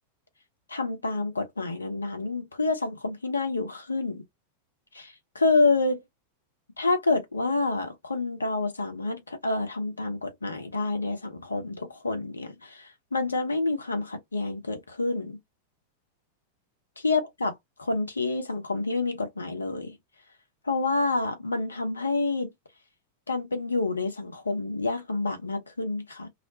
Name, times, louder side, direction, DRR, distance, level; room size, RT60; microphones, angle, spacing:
voice 1, 0.7-4.2 4.9-6.0 6.8-15.4 17.0-17.5 17.8-20.0 20.6-22.5 23.3-26.3, left 3 dB, 75° left, 0.6 m, -28 dB
2.4 x 2.1 x 2.6 m
figure-of-eight pair, 90°, 0 cm